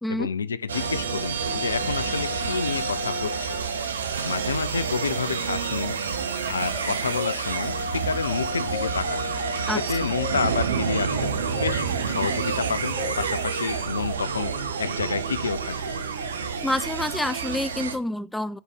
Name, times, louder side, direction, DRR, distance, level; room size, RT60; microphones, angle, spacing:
voice 1, 0.1-3.6 4.2-6.0 6.5-9.3 9.7-11.3 11.6-14.5 14.8-15.9, left 6 dB, 70° left, 0.4 m, -29 dB
sound 1, 0.7-18.0, right 5 dB, 70° right, 0.9 m, -28 dB
sound 2, 5.8-5.9 6.7-7.6 8.2-9.2 9.7-10.7 11.0-12.1 12.5-13.5, left 4 dB, 20° left, 1.9 m, -38 dB
voice 2, 16.6-18.6, left 1 dB, 5° left, 0.3 m, -28 dB
7.9 x 4.1 x 4.9 m
figure-of-eight pair, 90°, 0 cm